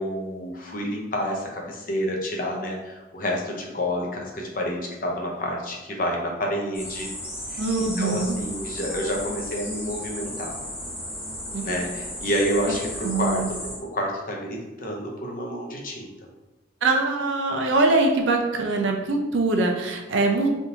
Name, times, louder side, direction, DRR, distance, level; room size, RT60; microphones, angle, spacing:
voice 1, 0.0-7.1 7.5-7.6 8.0-10.6 11.6-16.1, equal, 45° left, 0 dB, 0.6 m, -29 dB
sound 1, 6.7-13.8, left 1 dB, 15° left, 0.8 m, -35 dB
voice 2, 7.6-8.4 11.5-11.7 12.7-12.8 13.0-13.5 16.8-20.5, right 2 dB, 80° right, 2 dB, 0.5 m, -23 dB
3.4 x 2.7 x 2.8 m, 1.1 s
head